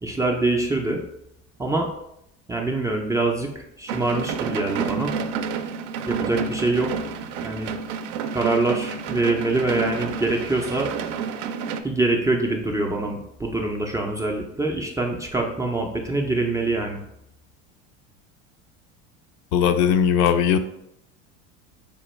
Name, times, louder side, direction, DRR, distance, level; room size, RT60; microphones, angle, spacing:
voice 1, 0.0-1.0 1.6-1.9 2.5-5.1 6.1-7.1 7.4-7.7 8.3-10.9 11.8-17.0, right 2 dB, 10° right, -1 dB, 0.3 m, -24 dB
sound 1, 3.9-11.8, right 6 dB, 65° right, 0.5 m, -30 dB
voice 2, 19.5-20.6, left 8 dB, 60° left, 9 dB, 0.5 m, -19 dB
5.0 x 2.2 x 3.1 m, 0.79 s
supercardioid pair, 95°, 36 cm